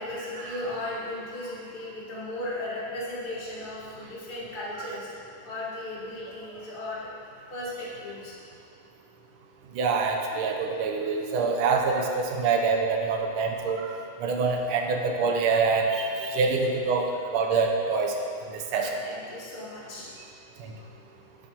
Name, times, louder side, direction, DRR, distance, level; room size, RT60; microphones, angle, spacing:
voice 1, 0.0-7.1 7.5-8.3 14.4-14.5 18.7-20.1, left 1 dB, 25° left, -7 dB, 1.6 m, -36 dB
voice 2, 9.7-13.9 14.2-18.1 18.5-19.0 20.6-20.7, right 4 dB, 85° right, 2 dB, 1.7 m, -25 dB
11.0 x 7.6 x 3.0 m, 2.4 s
omnidirectional pair, 2.3 m